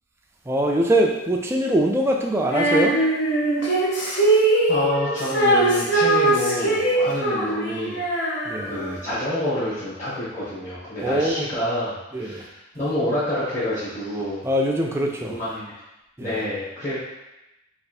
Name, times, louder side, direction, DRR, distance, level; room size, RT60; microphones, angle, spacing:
voice 1, 0.5-3.0 8.5-8.8 11.0-11.5 12.1-12.4 14.4-15.4 16.2-16.4, right 1 dB, 10° right, 0 dB, 0.3 m, -22 dB
Female singing, 2.5-9.0, right 2 dB, 55° left, 0.8 m, -21 dB
voice 2, 4.7-8.0 8.6-14.5 15.3-15.7 16.2-17.0, left 1 dB, 35° left, -14 dB, 1.2 m, -28 dB
3.3 x 2.5 x 4.1 m, 0.95 s
head